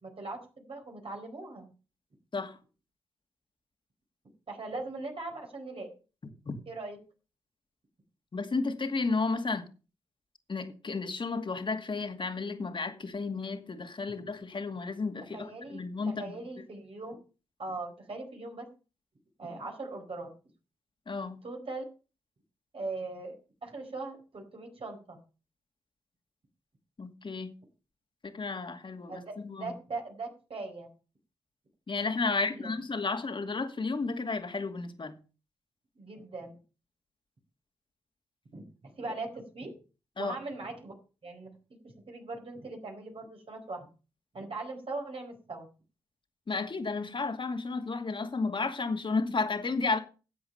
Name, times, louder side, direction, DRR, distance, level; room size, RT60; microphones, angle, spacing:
voice 1, 0.0-1.7 4.5-5.9 6.7-7.0 15.3-17.2 17.6-18.7 19.4-20.3 21.4-21.8 22.7-23.4 23.6-25.2 29.1-30.9 32.6-32.7 36.0-36.6 38.5-39.7 40.2-40.9 41.2-41.5 41.8-43.9 44.3-45.7, right 3 dB, 55° right, 4.5 m, -40 dB
voice 2, 8.3-9.6 10.5-16.6 21.1-21.4 27.0-27.5 28.2-29.7 31.9-35.2 40.2-40.4 46.5-50.0, left 4 dB, 45° left, 2.3 m, -32 dB
12.0 x 7.8 x 5.8 m
cardioid pair, 50°, 12 cm